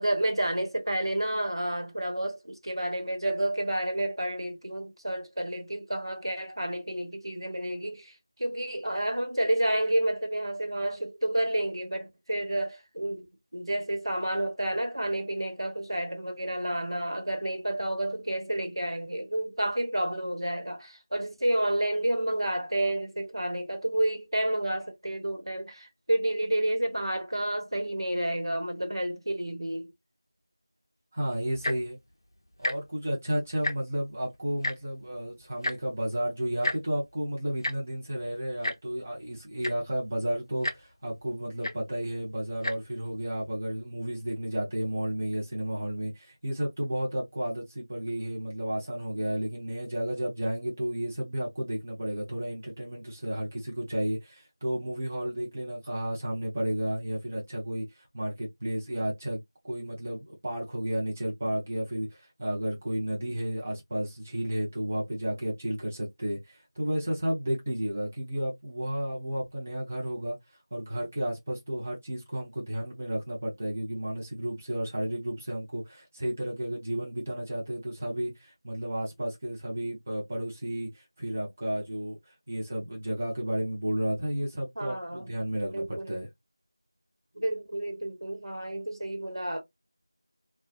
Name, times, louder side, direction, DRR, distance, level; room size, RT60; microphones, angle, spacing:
voice 1, 0.0-8.1 8.4-13.3 13.5-29.9 84.8-85.3 85.7-86.1 87.3-89.6, right 1 dB, 90° right, 1.0 m, -30 dB
voice 2, 31.1-32.0 32.6-59.4 59.6-70.4 70.7-82.2 82.5-86.3, equal, 25° right, 0.6 m, -32 dB
Tick-tock, 31.5-31.9 32.6-32.8 33.1-33.2 33.5-34.0 34.6-34.8 35.6-35.8 36.6-36.8 37.6-37.7 38.6-38.8 39.3-39.4 39.6-39.9 40.6-40.8 41.6-41.8 42.5-42.7 43.5-43.6, left 1 dB, 65° left, 0.5 m, -30 dB
2.4 x 2.2 x 2.3 m
figure-of-eight pair, 175°, 2 cm